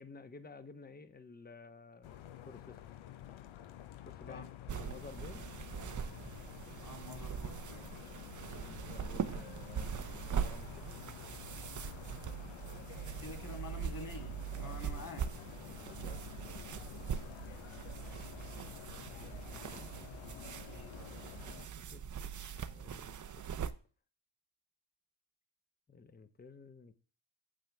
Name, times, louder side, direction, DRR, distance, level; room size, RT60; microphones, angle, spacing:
voice 1, 0.0-2.8 4.0-4.4 4.7-5.5 8.3-11.4 15.7-16.3 18.9-19.9 21.8-22.0 22.5-23.7 25.9-26.9, left 4 dB, 20° left, 1.0 m, -53 dB
sound 1, 2.0-21.7, left 12 dB, 70° left, 0.9 m, -50 dB
sound 2, 4.7-23.7, right 8 dB, 35° right, 0.8 m, -42 dB
voice 2, 6.8-8.1 13.2-15.2 20.2-21.1, left 3 dB, 40° left, 3.4 m, -49 dB
9.0 x 7.3 x 3.4 m
cardioid pair, 75°, 50 cm